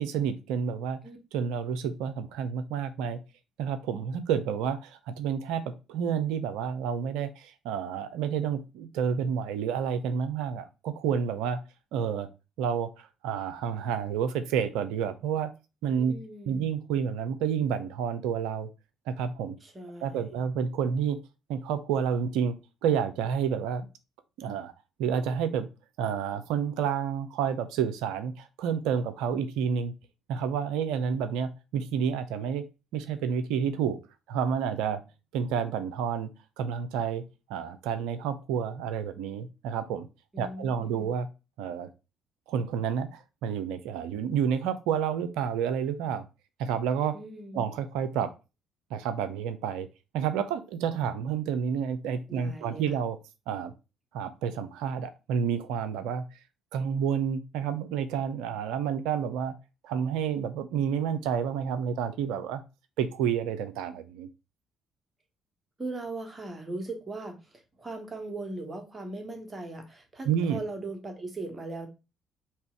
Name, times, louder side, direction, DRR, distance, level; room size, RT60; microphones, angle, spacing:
voice 1, 0.0-1.0 1.3-3.2 3.6-5.6 5.9-11.6 11.9-12.3 12.6-15.5 15.8-16.1 16.5-18.7 19.1-19.5 20.0-21.2 21.5-22.6 22.8-23.9 24.4-24.7 25.0-25.7 26.0-29.9 30.3-32.6 32.9-34.0 34.3-35.0 35.3-36.3 36.6-37.2 37.5-40.1 40.4-41.3 41.6-41.9 42.5-46.2 46.6-47.2 47.5-48.3 48.9-49.9 50.1-53.2 53.5-53.7 54.1-56.2 56.7-59.5 59.8-62.6 63.0-64.3 70.3-70.6, right 7 dB, 65° right, 11 dB, 0.4 m, -29 dB
voice 2, 16.0-16.7 19.6-20.5 40.3-41.1 47.1-47.7 52.3-52.9 65.8-71.9, right 2 dB, 25° right, 3 dB, 1.2 m, -39 dB
3.3 x 2.9 x 4.5 m, 0.29 s
figure-of-eight pair, 45°, 0 cm